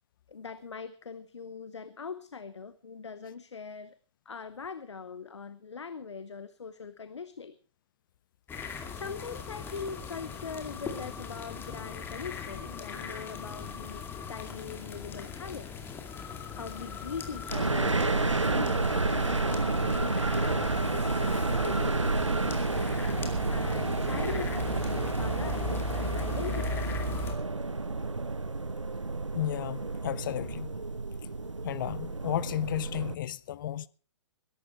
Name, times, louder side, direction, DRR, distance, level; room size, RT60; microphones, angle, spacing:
voice 1, 0.3-3.9 4.3-7.5 8.7-15.7 16.2-22.0 23.5-27.0, left 5 dB, 70° left, 0.9 m, -42 dB
sound 1, 8.5-27.3, left 5 dB, 15° left, 2.2 m, -39 dB
sound 2, 17.5-33.1, right 3 dB, 85° right, 0.8 m, -30 dB
voice 2, 29.3-30.7 31.6-33.9, left 12 dB, 45° left, 0.6 m, -33 dB
21.0 x 11.5 x 4.3 m
figure-of-eight pair, 120°, 15 cm